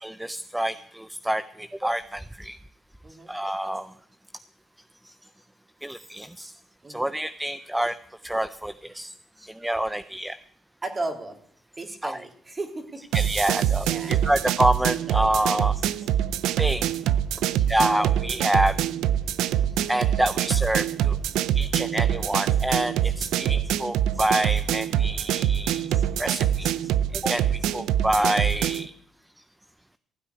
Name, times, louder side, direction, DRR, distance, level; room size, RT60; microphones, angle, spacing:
voice 1, 0.0-2.6 3.3-3.9 5.8-6.5 6.9-8.0 8.2-9.1 9.4-10.4 12.0-12.2 13.1-15.7 16.6-16.9 17.7-18.7 19.9-21.2 21.5-25.9 26.2-26.7 27.1-27.4 27.7-28.9, right 1 dB, 5° right, 12 dB, 0.5 m, -27 dB
voice 2, 10.8-11.4 11.8-13.0 13.8-14.1, right 2 dB, 30° right, 2 dB, 3.1 m, -34 dB
sound 1, 13.1-28.9, right 10 dB, 90° right, 0.5 m, -25 dB
16.0 x 6.0 x 9.6 m, 0.63 s
cardioid pair, 90°, 0 cm